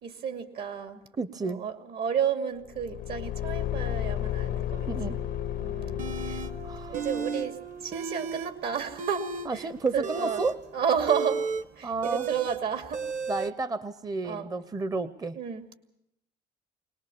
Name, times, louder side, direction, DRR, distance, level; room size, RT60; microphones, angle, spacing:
voice 1, 0.0-1.0 1.4-5.2 5.6-6.4 6.9-10.4 10.7-11.4 11.8-13.0 14.2-14.5 15.4-15.8, right 7 dB, 70° right, 7 dB, 2.5 m, -32 dB
voice 2, 1.2-1.6 4.9-5.2 6.6-7.0 9.4-10.6 11.8-12.3 13.3-15.4, right 3 dB, 20° right, 14 dB, 0.7 m, -31 dB
Car / Engine, 2.7-7.2, left 12 dB, 70° left, 0.7 m, -32 dB
Wind instrument woodwind instrument, 4.7-9.7, right 6 dB, 85° right, 2.5 m, -45 dB
sound 1, 6.0-6.5 6.9-7.5 7.7-8.5 8.9-13.5, right 5 dB, 50° right, 1.2 m, -33 dB
22.0 x 19.5 x 7.0 m, 0.80 s
cardioid pair, 110°, 17 cm